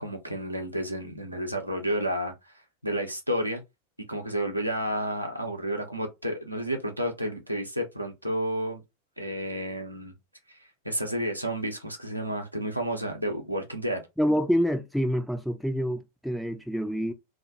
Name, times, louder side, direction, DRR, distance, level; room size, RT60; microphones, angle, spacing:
voice 1, 0.0-2.5 2.8-3.6 4.1-8.8 9.2-10.1 10.5-10.6 10.8-14.0, equal, 90° right, 0.5 m, -31 dB
voice 2, 14.2-17.1, equal, ahead, 0.4 m, -27 dB
2.1 x 2.1 x 2.8 m
figure-of-eight pair, 90°, 0 cm